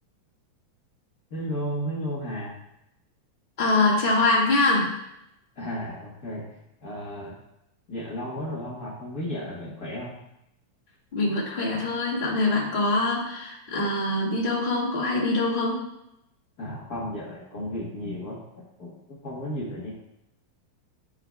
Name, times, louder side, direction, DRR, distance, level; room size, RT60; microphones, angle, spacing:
voice 1, 1.3-2.5 5.6-6.4 6.8-7.3 7.9-10.1 16.6-19.9, equal, 85° left, -6 dB, 0.8 m, -34 dB
voice 2, 3.6-4.9 11.1-15.8, left 2 dB, 30° left, -5 dB, 0.9 m, -24 dB
13.5 x 4.9 x 2.2 m, 0.83 s
omnidirectional pair, 3.8 m